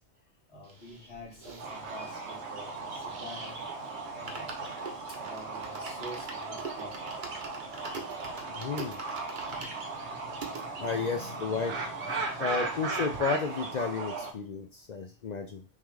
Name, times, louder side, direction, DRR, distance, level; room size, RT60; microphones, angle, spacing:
voice 1, 0.5-1.6 1.9-3.6 4.1-4.7 5.2-7.0 8.0-8.2 9.3-9.7 10.0-10.2 10.8-13.3, equal, 70° left, -4 dB, 1.8 m, -48 dB
sound 1, 0.6-3.4 3.7-3.8 4.1-10.6 11.2-11.3 11.5-11.6 11.9-12.9 13.1-13.2, right 3 dB, 50° right, 0.9 m, -44 dB
sound 2, 1.6-14.3, right 3 dB, 75° right, 1.2 m, -37 dB
voice 2, 8.5-9.0 10.8-11.7 12.4-15.6, left 5 dB, 55° left, 4 dB, 0.5 m, -32 dB
5.5 x 2.4 x 3.2 m, 0.34 s
omnidirectional pair, 1.1 m